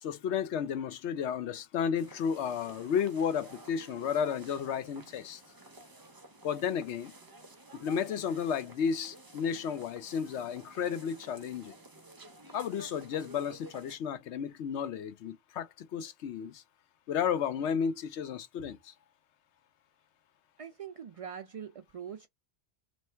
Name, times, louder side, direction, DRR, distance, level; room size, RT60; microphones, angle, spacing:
voice 1, 0.0-5.4 6.4-7.1 7.8-11.7 12.5-16.6 17.1-18.9, left 7 dB, 80° left, 0.9 m, -33 dB
sound 1, 2.0-13.9, right 2 dB, 25° right, 0.6 m, -52 dB
voice 2, 20.6-22.3, right 8 dB, 65° right, 0.3 m, -43 dB
3.2 x 3.1 x 4.3 m
omnidirectional pair, 1.1 m